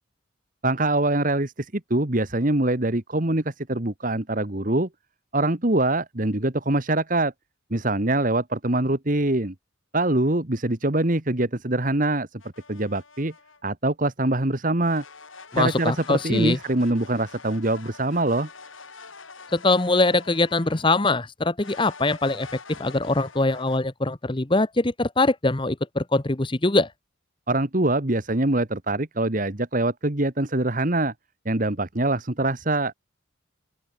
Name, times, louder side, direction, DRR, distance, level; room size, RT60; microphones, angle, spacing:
voice 1, 0.6-4.9 5.3-7.3 7.7-9.5 9.9-12.4 12.7-13.3 13.6-15.0 15.6-18.5 27.5-31.1 31.4-32.9, right 2 dB, 40° right, 1.7 m, -24 dB
sound 1, 12.4-13.6 14.8-20.9 21.6-23.8, left 4 dB, 80° left, 6.7 m, -45 dB
voice 2, 15.5-16.6 19.5-26.9, left 2 dB, 25° left, 1.0 m, -23 dB
open air
head